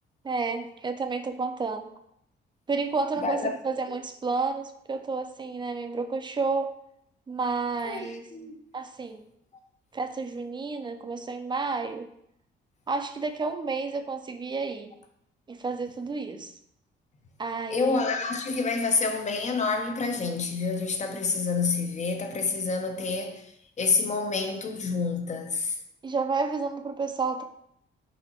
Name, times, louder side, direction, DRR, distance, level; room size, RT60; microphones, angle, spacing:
voice 1, 0.2-1.9 2.7-6.7 7.3-8.3 8.7-9.3 9.9-12.1 12.9-14.9 15.5-16.5 17.4-18.0 26.0-27.4, right 4 dB, 25° right, 0.4 m, -30 dB
voice 2, 3.2-3.6 7.8-8.6 17.7-23.5 23.8-25.8, left 4 dB, 35° left, 0.6 m, -28 dB
4.2 x 3.7 x 2.8 m
cardioid pair, 90°, 20 cm